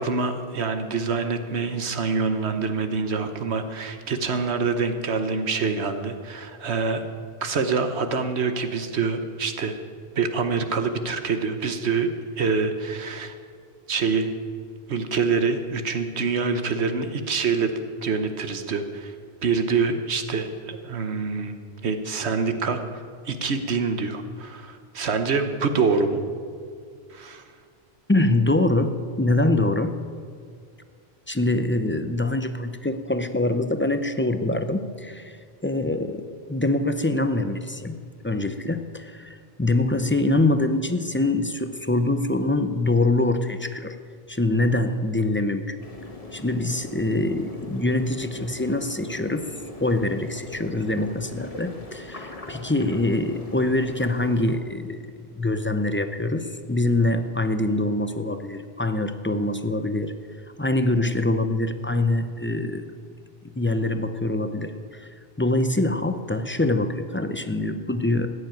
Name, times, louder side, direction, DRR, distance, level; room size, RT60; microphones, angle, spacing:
voice 1, 0.0-7.0 7.4-9.8 10.1-12.1 12.4-13.3 13.9-14.3 14.9-17.7 18.0-19.1 19.4-21.6 21.8-22.8 23.2-26.2 27.1-27.4, right 4 dB, 75° right, 8 dB, 1.3 m, -25 dB
voice 2, 28.1-30.0 31.3-35.4 35.6-38.0 38.2-44.0 44.3-45.8 46.3-49.5 49.8-55.1 55.3-60.1 60.6-62.9 63.5-65.1 65.4-68.3, left 2 dB, 15° left, 9 dB, 0.6 m, -24 dB
sound 1, 45.8-54.6, left 2 dB, 30° left, 1.8 m, -41 dB
15.5 x 9.9 x 9.1 m, 2.1 s
omnidirectional pair, 1.1 m